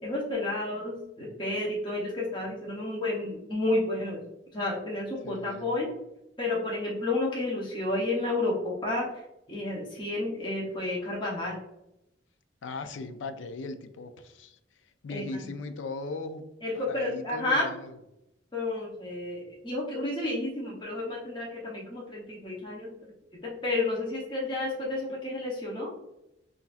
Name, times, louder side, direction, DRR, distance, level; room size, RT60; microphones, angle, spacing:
voice 1, 0.0-4.2 4.5-5.9 6.4-11.6 15.1-15.3 16.6-17.7 18.5-22.9 23.4-25.9, left 2 dB, 25° left, -4 dB, 0.8 m, -31 dB
voice 2, 5.2-5.7 12.6-14.6 15.0-16.4 16.7-18.0, left 3 dB, 85° left, 10 dB, 0.4 m, -38 dB
5.6 x 2.6 x 2.4 m, 0.86 s
head